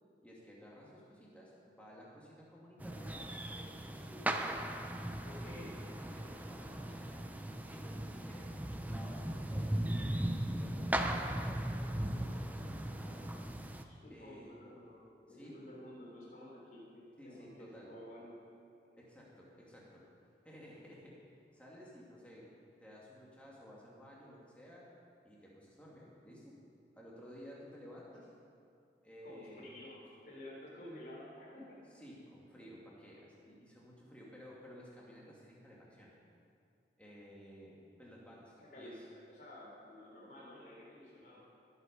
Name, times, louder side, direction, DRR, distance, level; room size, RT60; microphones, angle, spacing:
voice 1, 0.2-4.5 5.4-5.8 6.0-8.5 8.8-9.8 10.6-13.2 14.1-14.6 15.3-15.6 17.2-18.0 19.0-20.1 20.4-21.2 21.5-24.9 25.2-26.6 27.0-28.3 29.0-29.7 31.9-36.1 37.0-39.1, equal, 5° left, -5 dB, 2.5 m, -54 dB
sound 1, 2.8-13.8, right 1 dB, 10° right, 0.6 m, -38 dB
voice 2, 5.2-5.7 13.8-18.3 29.2-31.8 38.6-41.4, left 1 dB, 50° left, -5 dB, 3.6 m, -52 dB
21.0 x 8.1 x 5.3 m, 2.4 s
head